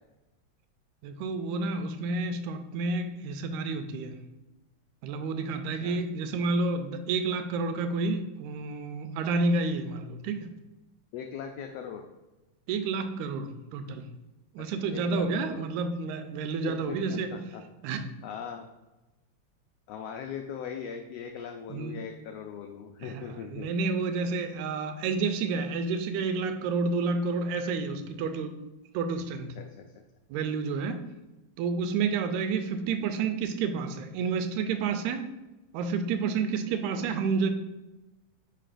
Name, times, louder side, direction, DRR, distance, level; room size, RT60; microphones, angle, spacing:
voice 1, 1.0-4.1 5.0-10.5 12.7-14.0 14.6-17.3 17.8-18.0 21.7-22.0 23.0-28.6 28.9-29.5 30.3-31.0 31.6-35.2 35.7-37.5, right 4 dB, 85° right, 8 dB, 2.0 m, -30 dB
voice 2, 11.1-12.0 14.6-15.7 16.6-17.6 18.2-18.7 19.9-23.7 29.6-29.9 36.9-37.1, left 7 dB, 90° left, 4 dB, 1.4 m, -40 dB
9.0 x 4.5 x 2.5 m, 1.0 s
omnidirectional pair, 3.4 m